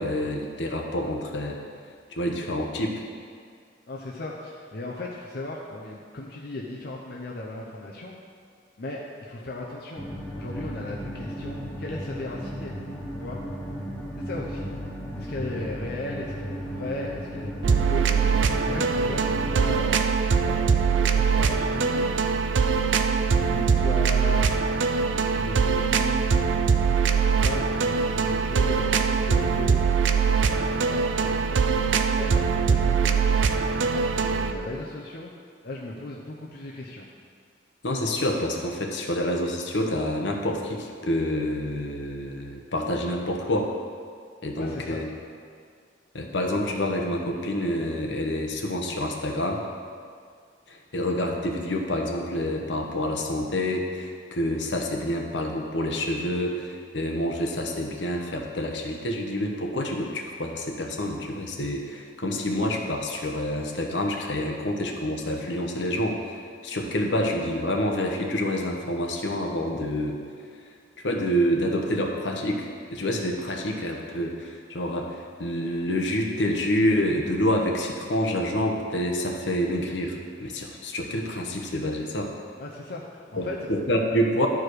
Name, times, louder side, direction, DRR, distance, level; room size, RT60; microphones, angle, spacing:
voice 1, 0.0-1.6 2.1-3.0 37.8-43.7 44.4-45.1 46.1-49.6 50.7-70.2 71.0-82.3 83.4-84.5, left 1 dB, 75° left, 1 dB, 1.0 m, -27 dB
voice 2, 3.9-8.1 8.8-10.1 10.3-12.7 13.2-13.4 14.2-14.7 15.1-20.1 20.4-22.1 23.3-24.7 24.9-26.4 27.3-29.8 30.2-33.5 33.8-35.3 35.6-37.1 44.5-45.0 82.6-83.7, left 2 dB, 55° left, -3 dB, 0.7 m, -36 dB
sound 1, 10.0-19.9, equal, 10° left, 1.0 m, -35 dB
sound 2, 17.6-34.5, right 5 dB, 85° right, 0.5 m, -22 dB
11.5 x 4.9 x 4.7 m, 2.1 s
head